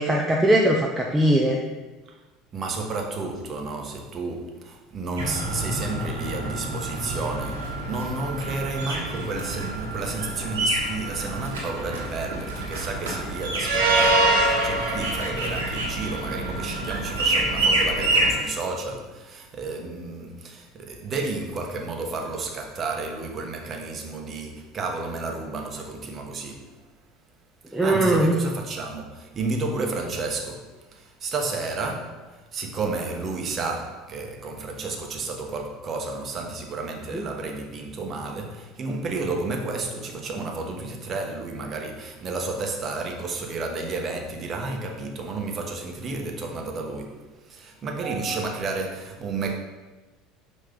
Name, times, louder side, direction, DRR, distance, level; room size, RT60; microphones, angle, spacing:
voice 1, 0.0-1.6 27.7-28.4 37.1-37.2, right 1 dB, 5° right, 0.7 m, -20 dB
voice 2, 2.5-26.7 27.7-49.6, right 3 dB, 40° right, 1.1 m, -32 dB
sound 1, 5.2-18.3, right 2 dB, 85° right, 1.5 m, -26 dB
5.7 x 3.2 x 5.2 m
hypercardioid pair, 75°, 0 cm